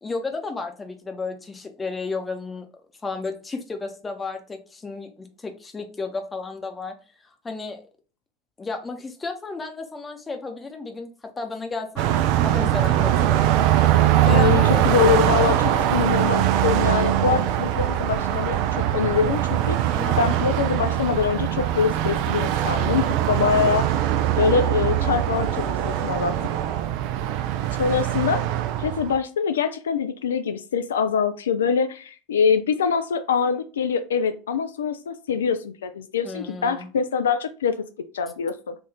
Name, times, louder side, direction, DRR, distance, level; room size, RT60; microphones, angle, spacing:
voice 1, 0.0-2.7 3.0-6.9 7.2-7.8 8.6-12.1 12.4-13.4 14.3-15.4 20.0-20.5 23.4-23.7 36.2-36.9, left 3 dB, 15° left, 5 dB, 0.7 m, -33 dB
Car passing by, 12.0-29.2, right 12 dB, 50° right, 0.3 m, -22 dB
voice 2, 14.3-18.6 18.9-23.8 24.4-26.3 27.8-28.5 28.8-37.8 38.1-38.7, left 6 dB, 65° left, 9 dB, 0.3 m, -24 dB
3.8 x 2.4 x 3.5 m, 0.35 s
figure-of-eight pair, 80°, 0 cm